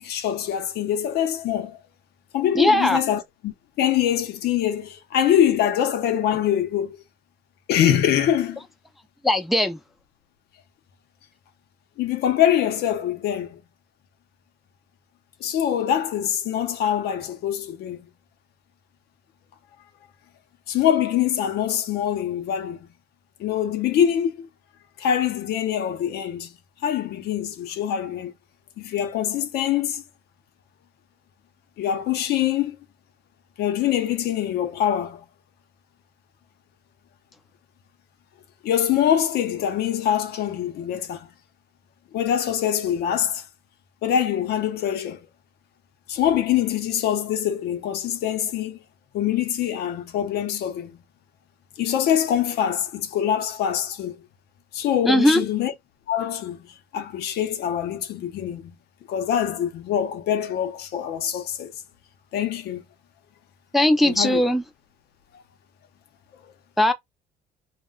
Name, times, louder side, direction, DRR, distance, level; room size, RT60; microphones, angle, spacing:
voice 1, 0.0-1.8 2.3-7.0 7.7-8.6 12.0-13.6 15.4-18.1 20.7-22.9 23.4-24.5 25.0-26.5 26.8-28.3 28.8-30.0 31.8-32.8 33.6-35.2 38.6-41.3 42.1-43.4 44.0-45.3 46.1-48.8 49.1-51.0 51.8-54.2 54.7-55.7 56.1-58.8 59.1-61.7 62.3-62.8 64.0-64.4, left 10 dB, 75° left, 0.7 m, -24 dB
voice 2, 2.5-3.0 9.2-9.8 55.0-55.4 63.7-64.6 66.8-66.9, left 1 dB, ahead, 0.4 m, -19 dB
2.2 x 2.2 x 3.6 m
cardioid pair, 110°, 17 cm